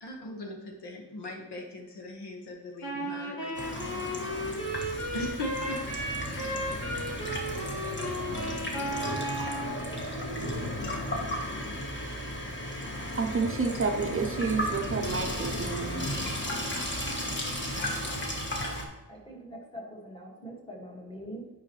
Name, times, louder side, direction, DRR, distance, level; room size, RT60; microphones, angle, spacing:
voice 1, 0.0-5.9, left 2 dB, 85° left, 2 dB, 1.6 m, -40 dB
Wind instrument woodwind instrument, 2.8-9.8, equal, 60° left, 2.3 m, -35 dB
Water tap faucet / Sink (filling or washing), 3.5-18.8, left 1 dB, 30° left, 1.4 m, -34 dB
voice 2, 13.2-16.2, right 4 dB, 35° right, 5 dB, 0.6 m, -30 dB
voice 3, 19.1-21.5, equal, 15° left, -2 dB, 1.9 m, -43 dB
9.9 x 5.5 x 3.2 m, 1.1 s
wide cardioid pair, 150°, 39 cm